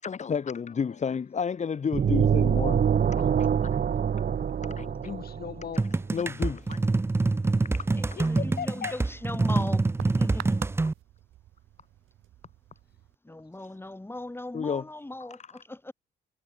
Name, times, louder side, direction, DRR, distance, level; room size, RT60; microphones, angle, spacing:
voice 1, 0.0-2.8 3.2-3.5 4.8-4.9 6.1-6.9 7.8-7.9 13.6-13.7 14.5-14.9 15.2-15.4, left 6 dB, 35° left, 1.1 m, -31 dB
sound 1, 1.9-5.7, right 7 dB, 50° right, 1.8 m, -25 dB
voice 2, 4.4-5.9 8.2-9.0 13.3-13.4 13.7-13.9, left 7 dB, 50° left, 5.4 m, -38 dB
sound 2, 5.8-10.9, right 3 dB, 10° right, 0.5 m, -26 dB
sound 3, 6.6-13.2, right 14 dB, 85° right, 7.2 m, -48 dB
voice 3, 7.9-10.6 13.2-15.9, left 2 dB, 10° left, 6.4 m, -39 dB
cardioid pair, 90°, 20 cm